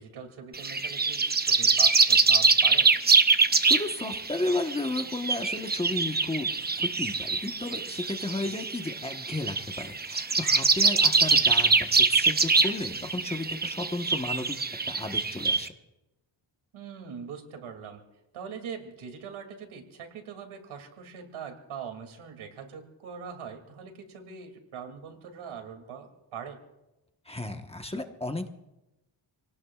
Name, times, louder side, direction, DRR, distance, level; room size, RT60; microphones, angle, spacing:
voice 1, 0.0-2.9 8.4-8.6 16.7-18.0 18.3-26.6, right 7 dB, 90° right, 5 dB, 2.7 m, -42 dB
sound 1, 0.5-15.7, right 4 dB, 20° right, 0.8 m, -24 dB
voice 2, 3.6-6.5 6.8-14.6 14.9-15.7 27.2-28.5, left 2 dB, 15° left, 5 dB, 1.2 m, -33 dB
27.5 x 18.5 x 2.4 m, 0.97 s
cardioid pair, 110°, 47 cm